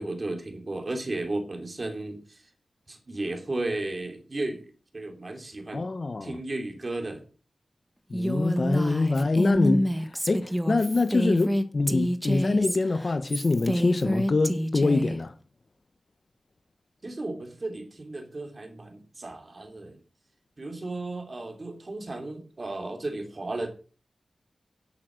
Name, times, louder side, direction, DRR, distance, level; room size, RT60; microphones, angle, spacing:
voice 1, 0.0-2.4 2.9-4.7 4.9-5.9 6.2-7.2 10.9-11.3 17.0-20.0 20.6-23.7, right 2 dB, 35° right, 3.1 m, -34 dB
voice 2, 5.7-6.4 8.1-9.9 10.3-15.3, left 3 dB, 45° left, 1.1 m, -25 dB
Female speech woman speaking, 8.1-15.2, equal, 5° right, 1.3 m, -27 dB
11.5 x 8.5 x 6.4 m
wide cardioid pair, 115°, 0 cm